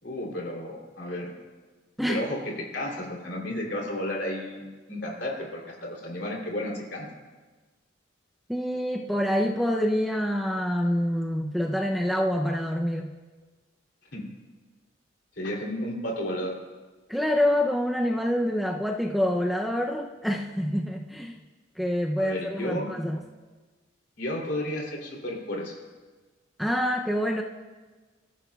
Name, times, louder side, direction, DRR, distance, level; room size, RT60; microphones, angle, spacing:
voice 1, 0.0-1.3 2.1-7.1 14.1-14.2 15.4-16.6 22.2-23.0 24.2-25.7, left 1 dB, 60° left, -1 dB, 3.1 m, -32 dB
voice 2, 8.5-13.1 17.1-21.4 21.8-23.2 26.6-27.4, equal, ahead, 0 dB, 0.5 m, -26 dB
26.0 x 14.0 x 2.4 m, 1.3 s
head